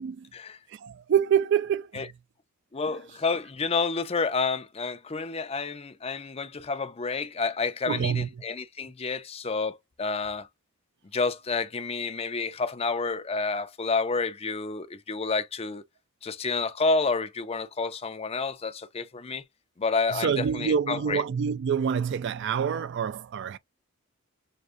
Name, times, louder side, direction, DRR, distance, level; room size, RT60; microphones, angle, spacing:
voice 1, 0.7-2.1 7.9-8.3 20.1-23.6, right 7 dB, 55° right, 0.3 m, -26 dB
voice 2, 2.7-10.5 11.1-15.8 16.2-19.4 19.8-21.2, left 4 dB, 25° left, 0.5 m, -29 dB
6.4 x 2.3 x 2.5 m
head